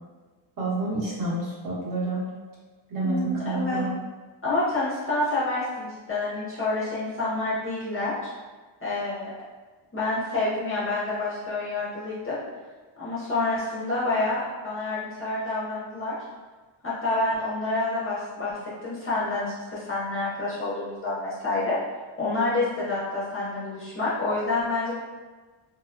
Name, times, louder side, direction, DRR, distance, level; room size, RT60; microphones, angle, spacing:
voice 1, 0.6-2.3 2.9-3.9, right 2 dB, 45° right, -7 dB, 0.9 m, -28 dB
voice 2, 3.0-3.8 4.4-8.2 8.8-9.3 9.9-12.4 13.0-16.2 16.8-21.8 22.2-25.1, left 2 dB, 30° left, -9 dB, 0.5 m, -28 dB
3.1 x 2.1 x 2.4 m, 1.4 s
wide cardioid pair, 160°, 48 cm